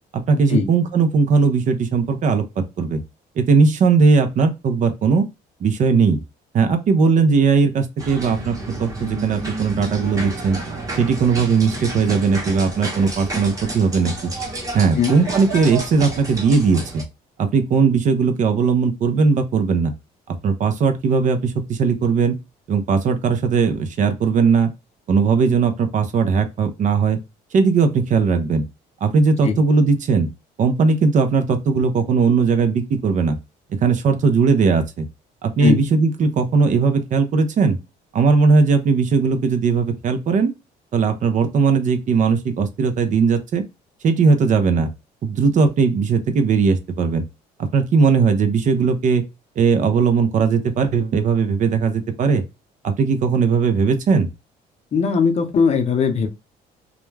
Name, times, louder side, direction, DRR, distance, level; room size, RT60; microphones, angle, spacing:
voice 1, 0.1-3.0 3.4-5.3 5.6-6.2 6.5-8.5 8.8-10.6 10.9-14.3 14.7-17.0 17.4-19.9 20.4-22.4 22.7-24.7 25.1-27.2 27.5-28.6 29.0-30.3 30.6-33.4 33.8-35.1 35.4-37.8 38.1-40.5 40.9-43.6 44.0-44.9 45.2-47.2 47.7-49.2 49.6-52.4 52.8-54.3, right 5 dB, 45° right, 0.6 m, -18 dB
sound 1, 8.0-17.0, right 2 dB, 20° right, 1.0 m, -30 dB
voice 2, 54.9-56.3, left 6 dB, 40° left, 0.7 m, -19 dB
2.4 x 2.2 x 3.2 m
cardioid pair, 110°, 17 cm